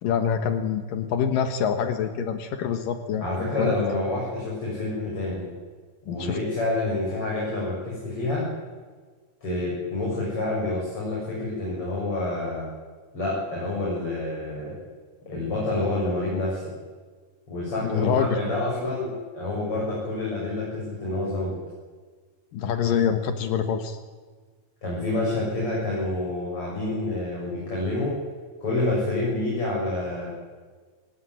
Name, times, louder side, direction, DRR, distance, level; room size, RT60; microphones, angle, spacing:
voice 1, 0.0-3.7 6.1-6.4 17.8-18.4 22.5-24.0, left 7 dB, 75° left, 8 dB, 2.9 m, -26 dB
voice 2, 3.2-5.5 6.1-8.5 9.4-12.7 13.1-14.8 15.3-16.6 17.5-21.5 24.8-28.2 28.6-30.3, left 2 dB, 40° left, -5 dB, 8.2 m, -28 dB
25.5 x 17.0 x 9.7 m, 1.5 s
omnidirectional pair, 4.0 m